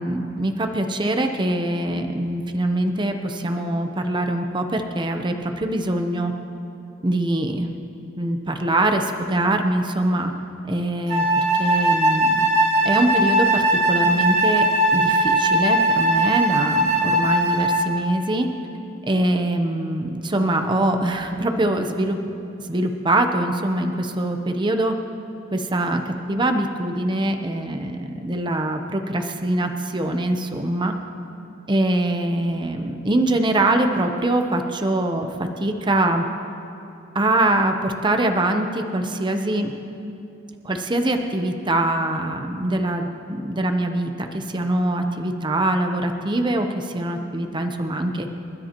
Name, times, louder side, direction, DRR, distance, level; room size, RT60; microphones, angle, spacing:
voice 1, 0.0-6.3 7.0-7.7 8.2-10.3 10.7-12.3 12.8-14.7 14.9-18.5 19.1-22.2 22.7-24.9 25.5-26.0 26.3-30.9 31.7-36.2 37.1-39.7 40.6-48.3, right 1 dB, 25° right, 5 dB, 0.8 m, -23 dB
Wind instrument woodwind instrument, 11.1-17.9, right 1 dB, 65° right, 3.9 m, -19 dB
28.0 x 13.0 x 3.0 m, 2.8 s
head